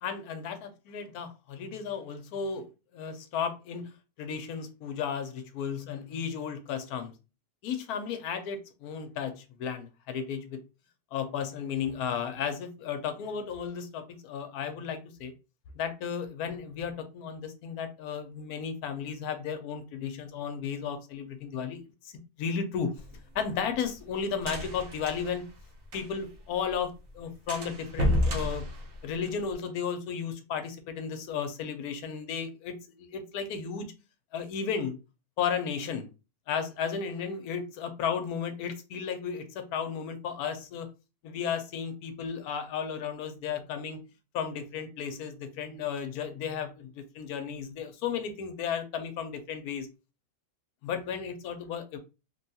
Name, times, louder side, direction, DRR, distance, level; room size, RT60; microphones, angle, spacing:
voice 1, 0.0-3.9 4.2-7.1 7.6-10.6 11.1-15.3 15.7-22.1 22.4-22.9 23.3-25.5 25.9-28.7 29.0-33.9 34.3-35.0 35.4-36.1 36.5-40.9 41.2-44.0 44.3-49.8 50.8-52.0, left 7 dB, 75° left, 1.1 m, -34 dB
sound 1, 23.0-26.4 26.7-26.8 27.1-27.2 27.5-29.5, equal, 60° right, 1.1 m, -31 dB
3.2 x 2.3 x 2.7 m
omnidirectional pair, 1.7 m